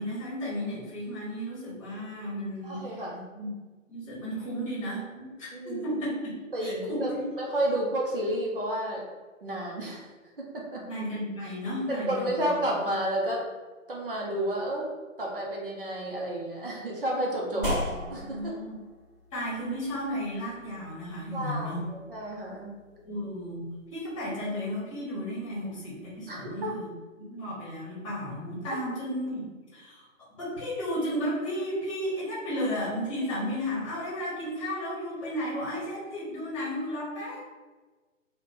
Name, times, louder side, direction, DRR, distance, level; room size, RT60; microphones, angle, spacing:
voice 1, 0.0-3.0 3.3-3.5 3.9-6.3 6.6-7.3 10.8-12.5 17.5-18.7 19.3-21.8 23.0-26.9 27.2-30.1 30.4-37.4, equal, 25° left, -6 dB, 1.0 m, -34 dB
voice 2, 2.6-3.2 5.5-5.8 6.5-9.0 9.4-10.1 10.4-10.8 11.9-13.4 13.9-14.9 15.2-17.6 18.1-18.5 21.3-22.7 26.3-26.7, right 1 dB, 45° right, -2 dB, 0.7 m, -31 dB
sound 1, 17.6-26.4, equal, 5° right, 0.9 m, -40 dB
3.0 x 2.2 x 4.1 m, 1.3 s
figure-of-eight pair, 135°, 40 cm